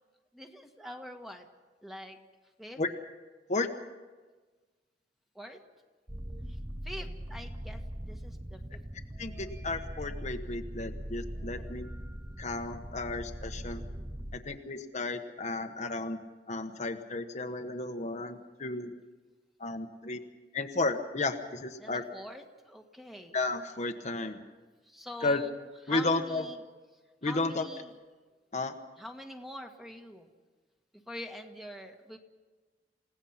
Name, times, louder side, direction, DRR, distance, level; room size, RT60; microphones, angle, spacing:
voice 1, 0.3-1.5 1.8-2.2 2.6-2.8 5.3-5.6 6.5-6.6 6.8-8.8 21.8-23.4 24.9-25.6 25.9-26.6 27.2-27.9 29.0-30.3 30.9-32.2, left 1 dB, ahead, 4 dB, 1.6 m, -44 dB
sound 1, 6.1-14.4, equal, 15° right, 0.8 m, -41 dB
voice 2, 9.2-11.9 12.4-13.8 14.3-16.2 16.5-19.0 19.6-20.2 20.5-22.0 23.3-24.4 25.2-25.4 25.9-26.4 27.2-27.7 28.5-28.7, left 3 dB, 40° left, 5 dB, 1.2 m, -33 dB
29.0 x 17.0 x 5.9 m, 1.3 s
head